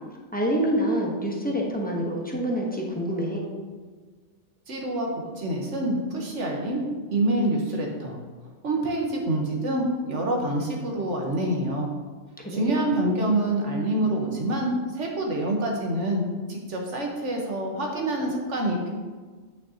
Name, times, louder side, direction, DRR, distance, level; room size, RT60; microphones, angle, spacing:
voice 1, 0.3-3.5 12.4-12.8, equal, 10° left, -2 dB, 1.0 m, -27 dB
voice 2, 4.7-5.1 5.4-6.8 7.1-8.2 8.6-11.9 12.5-18.9, right 1 dB, 80° right, 0 dB, 1.6 m, -26 dB
8.7 x 5.9 x 2.9 m, 1.4 s
omnidirectional pair, 1.2 m